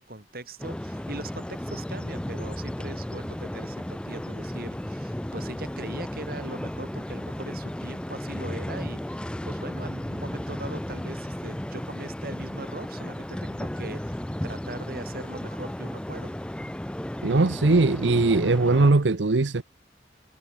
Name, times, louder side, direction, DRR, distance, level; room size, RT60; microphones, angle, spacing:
voice 1, 0.0-16.4, right 1 dB, 55° right, 5.1 m, -40 dB
sound 1, 0.6-18.9, left 1 dB, 5° left, 0.4 m, -34 dB
voice 2, 17.2-19.6, right 3 dB, 90° right, 0.8 m, -20 dB
head